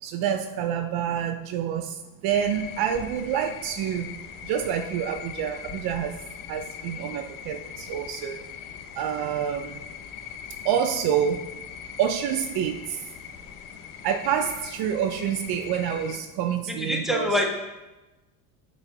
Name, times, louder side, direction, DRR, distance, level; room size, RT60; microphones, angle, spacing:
voice 1, 0.0-4.1 4.4-6.2 6.5-8.4 9.0-9.8 10.6-11.4 12.0-13.0 14.0-17.3, right 8 dB, 55° right, 7 dB, 0.7 m, -27 dB
sound 1, 2.3-16.2, left 8 dB, 45° left, 0.9 m, -41 dB
voice 2, 16.7-17.4, left 1 dB, ahead, 1 dB, 1.5 m, -25 dB
7.5 x 6.4 x 4.1 m, 1.1 s
supercardioid pair, 100°, 43 cm